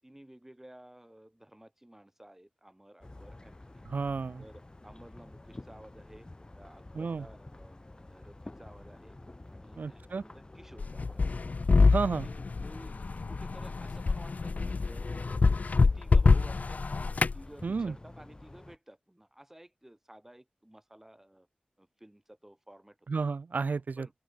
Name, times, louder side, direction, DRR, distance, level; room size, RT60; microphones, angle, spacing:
voice 1, 0.0-3.8 4.4-6.3 6.5-9.2 9.5-11.4 12.1-13.0 13.3-15.5 15.8-16.8 17.3-21.5 21.8-23.1 24.0-24.1, right 1 dB, 10° right, 7.6 m, -54 dB
sound 1, 3.0-18.8, left 2 dB, 30° left, 6.4 m, -50 dB
voice 2, 3.9-4.4 6.9-7.2 9.8-10.2 11.9-12.3 17.6-17.9 23.1-24.1, right 4 dB, 90° right, 2.1 m, -31 dB
sound 2, 10.8-17.4, left 4 dB, 65° left, 1.0 m, -26 dB
open air
wide cardioid pair, 85°, 3 cm